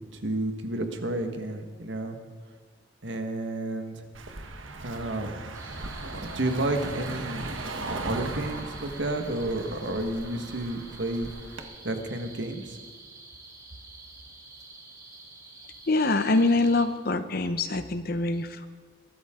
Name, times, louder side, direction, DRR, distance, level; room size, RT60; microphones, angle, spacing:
voice 1, 0.1-2.2 3.0-4.0 4.8-5.3 6.0-7.5 7.9-11.3 11.8-12.8, right 1 dB, 65° right, 5 dB, 1.6 m, -31 dB
Car passing by, 4.1-11.6, right 2 dB, 85° right, 1.4 m, -38 dB
sound 1, 5.5-16.9, right 2 dB, 15° right, 1.6 m, -46 dB
voice 2, 15.9-18.7, left 2 dB, 50° left, 10 dB, 0.9 m, -24 dB
22.0 x 13.5 x 3.8 m, 1.5 s
head